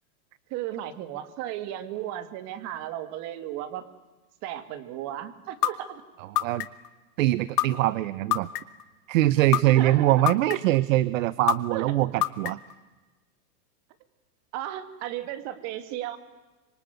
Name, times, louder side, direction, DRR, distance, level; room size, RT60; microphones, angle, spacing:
voice 1, 0.5-3.8 4.4-6.0 9.4-10.2 11.7-12.0 14.5-16.2, right 12 dB, 35° right, 12 dB, 2.1 m, -35 dB
sound 1, 5.6-5.7 6.4-6.9 7.6-7.7 8.3-8.8 9.5-9.6 10.3-10.8 11.5-11.6 12.2-12.7, left 15 dB, 75° left, 1.7 m, -23 dB
voice 2, 7.2-8.5 9.1-12.6, right 15 dB, 55° right, 19 dB, 0.9 m, -23 dB
26.0 x 24.0 x 9.3 m, 1.2 s
supercardioid pair, 155°, 47 cm